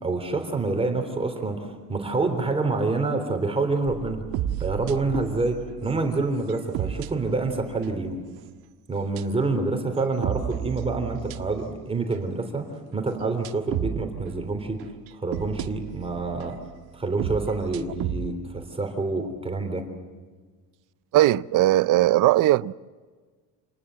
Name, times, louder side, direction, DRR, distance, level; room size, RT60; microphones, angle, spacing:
voice 1, 0.0-4.2 4.6-8.2 8.9-12.7 12.9-14.8 15.1-16.6 16.9-19.8, right 3 dB, 15° right, 3.5 m, -27 dB
sound 1, 3.9-8.3 9.2-9.5 10.0-11.8 12.1-12.2 13.4-18.4, right 11 dB, 85° right, 1.6 m, -34 dB
voice 2, 21.1-22.7, right 15 dB, 60° right, 0.6 m, -19 dB
27.5 x 20.0 x 7.7 m
cardioid pair, 155°, 36 cm